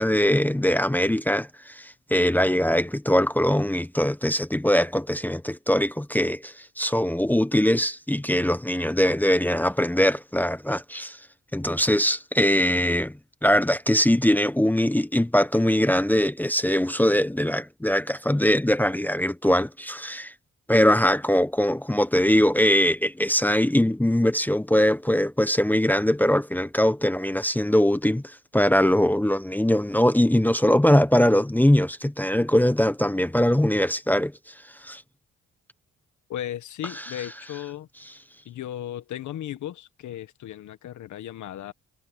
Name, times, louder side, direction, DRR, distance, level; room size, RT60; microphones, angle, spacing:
voice 1, 0.0-11.2 11.5-13.1 13.4-20.3 20.7-34.3 34.8-35.0, equal, 5° left, 1.0 m, -22 dB
voice 2, 36.3-37.9 38.4-41.7, left 11 dB, 75° left, 1.6 m, -35 dB
cardioid pair, 90°, 30 cm